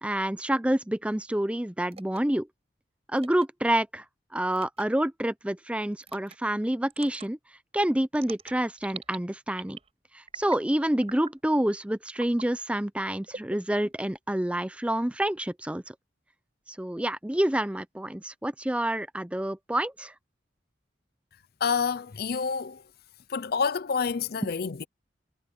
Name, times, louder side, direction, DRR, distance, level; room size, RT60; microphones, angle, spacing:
voice 1, 0.0-2.5 3.1-4.0 4.3-7.4 7.7-9.8 10.1-15.8 16.8-20.1, right 1 dB, 5° right, 0.5 m, -28 dB
sound 1, 1.9-2.2 3.2-3.5 4.5-4.8 6.0-6.4 6.9-7.3 8.1-9.2 9.5-9.9 10.3-10.7 11.0-11.4 12.1-12.5 13.3-14.2, right 5 dB, 35° right, 4.8 m, -44 dB
voice 2, 21.6-22.8 23.3-24.8, left 5 dB, 55° left, 0.5 m, -28 dB
head